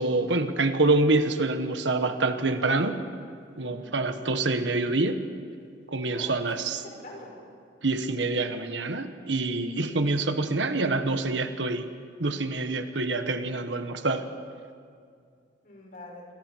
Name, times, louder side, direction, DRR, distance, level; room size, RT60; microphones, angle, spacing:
voice 1, 0.0-3.0 3.6-5.2 5.9-6.8 7.8-11.9 12.2-14.3, right 2 dB, 80° right, 8 dB, 1.4 m, -26 dB
voice 2, 3.6-3.9 6.1-6.3 6.7-7.4 9.7-9.9 15.6-16.3, left 1 dB, 50° left, -2 dB, 6.5 m, -45 dB
29.0 x 24.0 x 4.7 m, 2.3 s
head